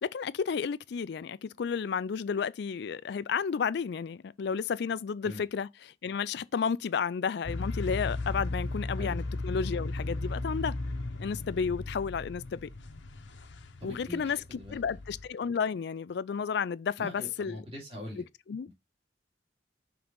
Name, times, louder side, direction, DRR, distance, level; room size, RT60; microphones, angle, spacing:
voice 1, 0.0-10.8 11.2-12.7 13.8-17.6 18.5-18.7, left 6 dB, 60° left, 0.4 m, -32 dB
sound 1, 7.4-15.3, left 2 dB, 75° left, 0.9 m, -36 dB
voice 2, 13.8-14.8 17.0-18.2, left 1 dB, 30° right, 2.6 m, -43 dB
6.0 x 3.8 x 5.3 m
head